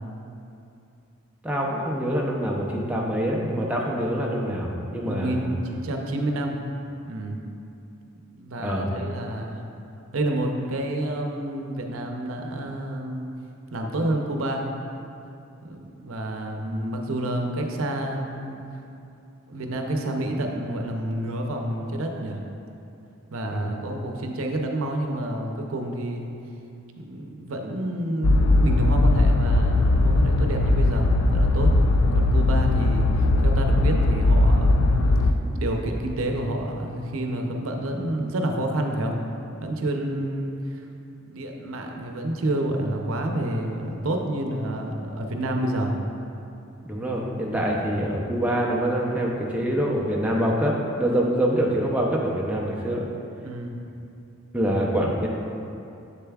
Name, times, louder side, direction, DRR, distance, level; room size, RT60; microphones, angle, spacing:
voice 1, 1.4-5.5 8.6-8.9 23.5-23.7 46.8-53.1 54.5-55.3, equal, 5° right, -3 dB, 0.5 m, -25 dB
voice 2, 5.0-6.6 7.0-7.4 8.3-9.6 10.1-13.3 13.7-14.7 15.6-18.6 19.5-22.4 23.3-26.3 27.0-31.7 32.1-39.2 39.6-40.8 41.2-46.0 53.4-53.8, right 1 dB, 80° right, 2 dB, 0.6 m, -29 dB
sound 1, 28.2-35.3, left 2 dB, 90° left, 0.4 m, -19 dB
7.3 x 6.7 x 2.3 m, 2.7 s
head